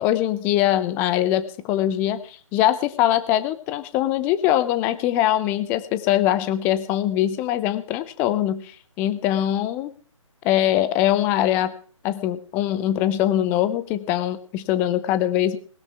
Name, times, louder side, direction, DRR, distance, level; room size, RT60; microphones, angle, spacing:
voice 1, 0.0-9.9 10.4-11.7 12.0-15.6, left 12 dB, 10° left, 13 dB, 0.6 m, -22 dB
19.5 x 12.5 x 3.5 m, 0.43 s
figure-of-eight pair, 140°, 17 cm